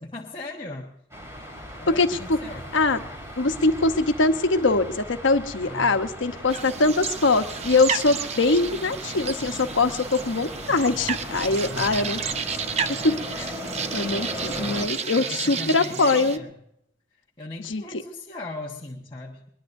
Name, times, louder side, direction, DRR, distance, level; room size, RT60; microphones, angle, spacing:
voice 1, 0.0-0.9 1.8-2.7 5.6-6.5 11.6-12.4 14.5-16.6 17.4-19.5, left 2 dB, 25° left, -3 dB, 1.4 m, -39 dB
sound 1, 1.1-14.9, equal, 15° right, 3.1 m, -38 dB
voice 2, 2.0-2.4 2.7-3.0 3.4-12.2 13.0-13.5 13.9-16.4 17.7-17.8, left 3 dB, 85° left, 8 dB, 1.0 m, -22 dB
sound 2, 6.5-16.4, right 6 dB, 35° right, 0.7 m, -32 dB
21.5 x 21.5 x 2.7 m, 0.76 s
head